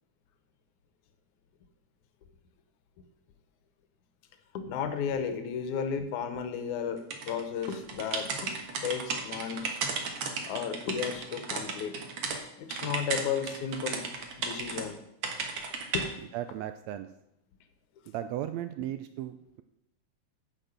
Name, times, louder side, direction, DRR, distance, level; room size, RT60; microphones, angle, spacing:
voice 1, 4.5-8.5 8.8-9.8 10.5-12.0 12.6-14.1 14.4-15.0 15.9-16.1, left 7 dB, 75° left, 9 dB, 2.4 m, -33 dB
sound 1, 7.1-12.4 12.7-14.8 15.2-16.1, right 5 dB, 55° right, 2.0 m, -34 dB
voice 2, 16.3-17.1 18.1-19.6, right 12 dB, 85° right, 10 dB, 1.5 m, -36 dB
9.8 x 6.5 x 6.7 m, 0.81 s
omnidirectional pair, 3.5 m